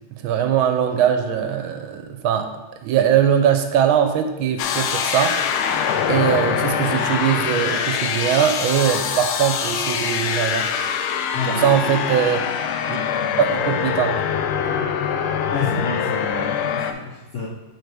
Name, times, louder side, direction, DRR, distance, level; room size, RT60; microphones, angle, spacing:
voice 1, 0.2-2.5 2.8-5.4 6.1-10.7 11.4-12.5 12.9-13.0 13.4-14.2, right 9 dB, 80° right, 6 dB, 1.4 m, -21 dB
sound 1, 4.6-16.9, left 7 dB, 90° left, 1.4 m, -24 dB
voice 2, 11.3-11.9 15.5-17.5, left 4 dB, 70° left, -3 dB, 0.7 m, -29 dB
7.8 x 4.7 x 3.4 m, 1.1 s
omnidirectional pair, 2.3 m